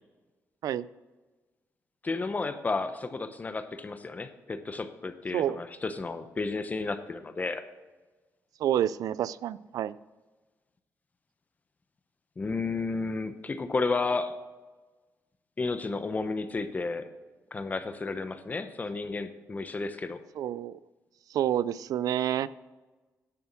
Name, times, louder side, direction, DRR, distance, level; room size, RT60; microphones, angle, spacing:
voice 1, 2.0-7.6 12.4-14.4 15.6-17.1 17.5-20.2, left 3 dB, 25° left, 10 dB, 0.8 m, -32 dB
voice 2, 8.6-9.9 20.3-20.7 21.3-22.5, right 11 dB, 90° right, 18 dB, 0.4 m, -28 dB
10.5 x 6.9 x 6.0 m, 1.2 s
cardioid pair, 130°, 6 cm